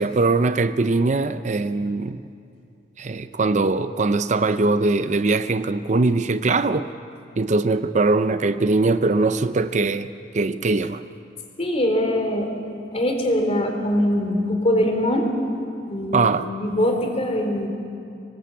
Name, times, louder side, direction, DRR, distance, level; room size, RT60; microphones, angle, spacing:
voice 1, 0.0-2.2 3.0-6.9 7.4-11.0 16.1-16.5, right 3 dB, 45° right, 11 dB, 0.6 m, -21 dB
voice 2, 11.6-12.5 12.9-15.3 15.9-16.3 16.6-17.7, left 1 dB, 35° left, 3 dB, 3.6 m, -22 dB
25.0 x 19.5 x 8.3 m, 2.5 s
head